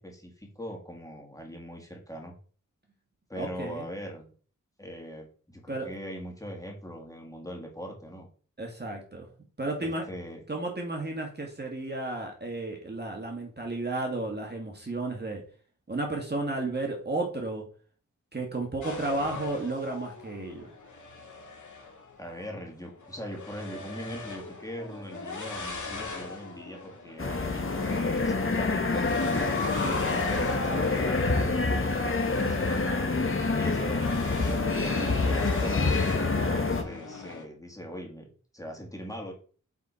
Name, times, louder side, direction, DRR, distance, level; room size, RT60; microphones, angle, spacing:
voice 1, 0.0-2.3 3.3-4.3 4.8-8.3 9.8-10.4 22.2-29.1 29.7-34.0 34.7-36.2 36.7-39.3, equal, 10° left, 0 dB, 2.7 m, -41 dB
voice 2, 3.3-3.9 5.7-5.9 8.6-9.3 9.6-10.0 10.5-15.4 15.9-17.6 18.3-20.7, right 2 dB, 30° right, 1 dB, 1.8 m, -33 dB
sound 1, 18.8-37.4, left 3 dB, 65° left, 2.0 m, -40 dB
sound 2, 27.2-36.8, left 3 dB, 40° left, 1.4 m, -27 dB
8.2 x 4.2 x 4.4 m, 0.42 s
cardioid pair, 55°, 33 cm